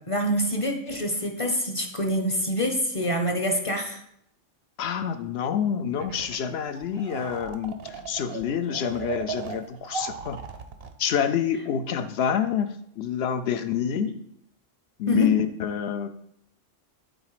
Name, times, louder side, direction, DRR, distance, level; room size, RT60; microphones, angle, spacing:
voice 1, 0.1-4.0 14.0-14.1 15.1-15.3, equal, 30° left, 3 dB, 0.7 m, -26 dB
voice 2, 4.8-10.4 11.0-14.2 15.0-16.1, left 8 dB, 65° left, 10 dB, 0.7 m, -27 dB
sound 1, 6.0-6.4 6.7-10.9, right 6 dB, 55° right, 0.8 m, -36 dB
9.0 x 4.0 x 4.8 m, 0.73 s
omnidirectional pair, 1.3 m